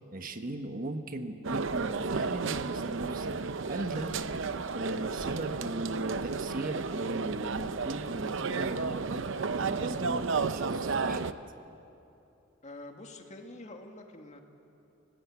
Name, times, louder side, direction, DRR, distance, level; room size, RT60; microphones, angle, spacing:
voice 1, 0.1-3.4 3.7-4.1 4.7-9.2 9.6-11.2, right 2 dB, 45° right, 7 dB, 1.3 m, -37 dB
sound 1, 1.4-11.3, right 4 dB, 65° right, 0.7 m, -32 dB
voice 2, 12.6-14.4, left 2 dB, 35° left, 3 dB, 2.0 m, -46 dB
28.5 x 18.5 x 8.3 m, 2.8 s
head